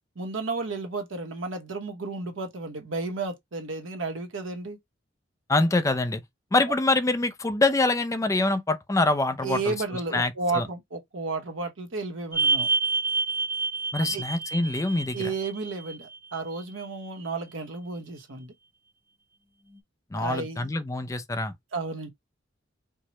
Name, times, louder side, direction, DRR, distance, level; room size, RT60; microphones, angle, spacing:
voice 1, 0.2-4.8 9.4-12.7 14.0-14.2 15.1-18.5 20.1-20.7 21.7-22.1, right 3 dB, 75° right, 1.0 m, -32 dB
voice 2, 5.5-6.2 6.5-9.7 10.1-10.6 13.9-15.2 20.1-21.5, left 2 dB, 15° left, 0.4 m, -25 dB
sound 1, 12.3-16.4 16.8-16.9 19.8-19.9, right 4 dB, 10° right, 0.7 m, -28 dB
4.5 x 2.1 x 2.9 m
head